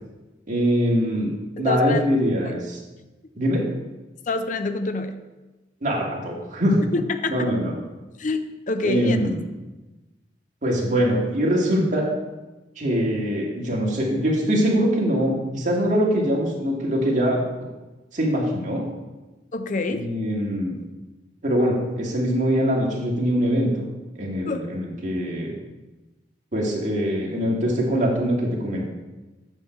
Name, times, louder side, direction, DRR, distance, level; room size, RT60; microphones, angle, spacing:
voice 1, 0.5-1.3 1.6-2.8 3.4-3.6 5.8-6.8 7.3-7.7 8.8-9.4 10.6-12.1 12.8-17.4 18.1-18.9 19.9-20.7 21.4-23.8 24.2-25.5 26.5-28.9, equal, 45° right, -2 dB, 2.1 m, -23 dB
voice 2, 1.6-2.0 2.4-2.5 4.3-5.2 6.9-7.3 8.2-8.4 8.7-9.3 19.5-20.1 24.5-24.7, left 3 dB, 45° left, 9 dB, 0.5 m, -26 dB
9.0 x 4.5 x 6.7 m, 1.1 s
head